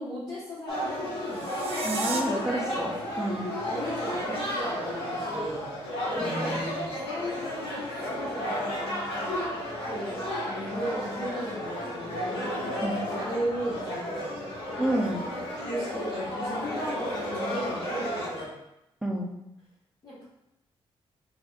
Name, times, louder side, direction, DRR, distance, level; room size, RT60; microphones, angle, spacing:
voice 1, 0.0-1.5 2.1-2.9 3.7-5.7 6.1-6.7 7.1-9.2 9.9-14.4 15.6-18.5 20.0-20.2, equal, 40° left, -10 dB, 1.2 m, -36 dB
sound 1, 0.7-18.4, equal, 65° left, 1.5 m, -33 dB
sound 2, 1.2-2.2, right 7 dB, 75° right, 0.4 m, -35 dB
voice 2, 1.8-3.5 6.2-6.9 12.8-13.0 14.8-15.3 19.0-19.3, right 1 dB, 5° right, -1 dB, 0.5 m, -30 dB
4.7 x 3.5 x 2.4 m, 0.87 s
wide cardioid pair, 140°, 10 cm